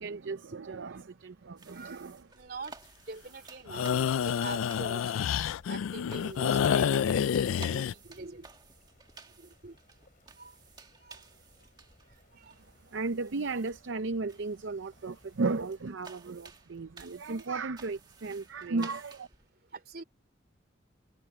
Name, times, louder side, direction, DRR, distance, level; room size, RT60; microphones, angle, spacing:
voice 1, 0.0-2.3 12.9-19.3, right 3 dB, 70° right, 0.6 m, -35 dB
sound 1, 1.6-19.5, right 4 dB, 20° right, 1.6 m, -54 dB
voice 2, 2.3-2.7 3.1-3.9 4.2-5.3 5.7-8.5 9.4-9.8 10.4-10.5 11.0-11.2 12.4-12.5 19.7-20.0, right 3 dB, 50° right, 2.7 m, -44 dB
sound 2, 3.7-7.9, left 8 dB, 90° left, 0.3 m, -28 dB
sound 3, 3.9-15.8, left 1 dB, 40° left, 4.0 m, -64 dB
head